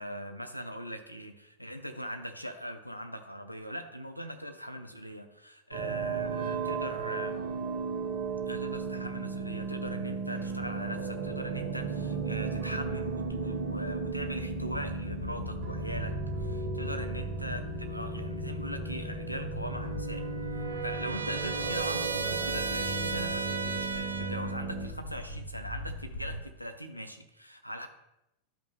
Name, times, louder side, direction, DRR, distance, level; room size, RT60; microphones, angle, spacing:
voice 1, 0.0-7.5 8.5-20.3 20.6-27.9, equal, 90° left, 7 dB, 0.7 m, -40 dB
sound 1, 5.7-24.9, right 4 dB, 40° right, 2.2 m, -35 dB
sound 2, 13.2-26.4, equal, 40° left, 2.1 m, -43 dB
Trumpet, 19.9-24.6, right 4 dB, 75° right, 0.5 m, -36 dB
11.5 x 5.2 x 3.2 m, 0.86 s
figure-of-eight pair, 90°, 0 cm